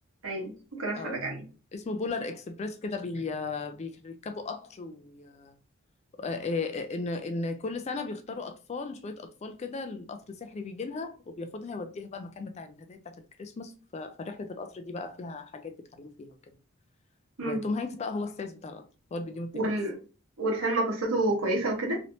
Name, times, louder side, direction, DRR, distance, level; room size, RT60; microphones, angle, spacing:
voice 1, 0.2-1.4 17.4-17.6 19.5-20.0 20.4-22.0, right 2 dB, 75° right, 1.3 m, -29 dB
voice 2, 1.7-5.5 6.2-16.4 17.4-19.6, left 3 dB, 30° left, 0.3 m, -36 dB
3.1 x 2.8 x 2.7 m
head